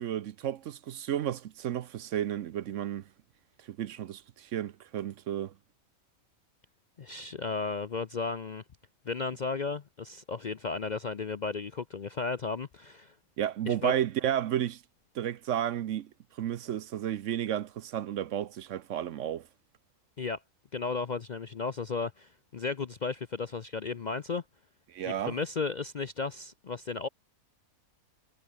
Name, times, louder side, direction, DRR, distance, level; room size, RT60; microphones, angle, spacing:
voice 1, 0.0-3.1 3.7-5.5 13.4-14.8 15.1-16.1 16.4-19.5 24.9-25.4, right 10 dB, 65° right, 1.0 m, -32 dB
voice 2, 7.0-8.6 9.1-13.1 13.7-13.9 20.2-20.4 20.7-24.4 25.1-27.1, left 4 dB, 45° left, 0.6 m, -34 dB
omnidirectional pair, 1.5 m